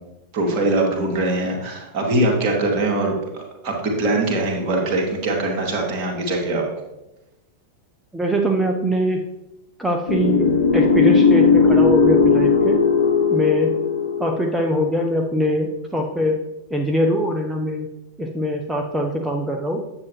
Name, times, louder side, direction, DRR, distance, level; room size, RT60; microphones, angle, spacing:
voice 1, 0.3-6.6, right 2 dB, 40° right, 0 dB, 2.1 m, -22 dB
voice 2, 8.1-9.2 9.8-10.5 10.7-12.8 13.3-13.7 14.2-16.4 16.7-17.9 18.2-19.8, equal, 5° right, 1 dB, 0.8 m, -22 dB
sound 1, 10.1-15.2, left 5 dB, 65° left, 0.9 m, -17 dB
9.6 x 7.7 x 3.1 m, 0.96 s
figure-of-eight pair, 90°, 0 cm